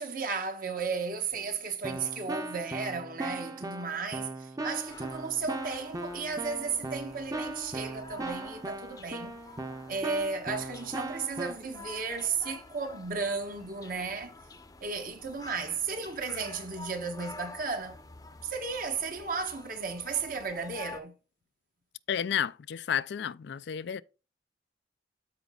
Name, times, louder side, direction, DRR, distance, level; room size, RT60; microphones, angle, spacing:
voice 1, 0.0-9.4 9.9-14.3 14.8-18.0 18.4-21.1, right 5 dB, 50° right, 1.3 m, -34 dB
Keyboard (musical), 1.3-1.5 1.8-11.5, right 2 dB, 20° right, 0.8 m, -38 dB
sound 1, 4.9-21.0, left 3 dB, 20° left, 0.7 m, -49 dB
voice 2, 22.1-24.0, left 8 dB, 65° left, 0.4 m, -31 dB
13.0 x 5.1 x 2.4 m
head